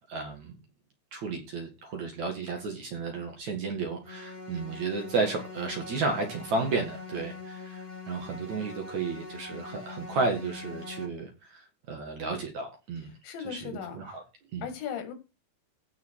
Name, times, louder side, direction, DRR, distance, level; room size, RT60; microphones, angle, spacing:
voice 1, 0.1-0.6 1.1-13.1 13.4-14.2 14.5-14.7, right 4 dB, 50° right, 2.5 m, -33 dB
sound 1, 4.0-11.0, left 3 dB, 15° left, 1.4 m, -43 dB
voice 2, 13.2-14.3 14.6-15.1, left 8 dB, 80° left, 4.4 m, -37 dB
16.0 x 5.5 x 4.8 m
omnidirectional pair, 5.1 m